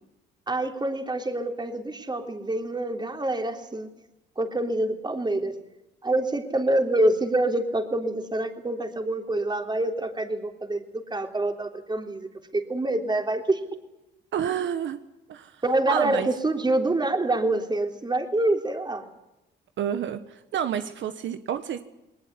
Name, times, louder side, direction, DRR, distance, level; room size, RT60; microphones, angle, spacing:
voice 1, 0.5-3.9 4.4-5.5 6.0-13.6 15.6-19.1, right 2 dB, 20° right, 5 dB, 3.5 m, -26 dB
voice 2, 14.3-15.0 15.3-16.3 19.8-21.8, right 9 dB, 70° right, 10 dB, 1.4 m, -30 dB
21.0 x 19.5 x 9.7 m, 0.93 s
cardioid pair, 90°, 20 cm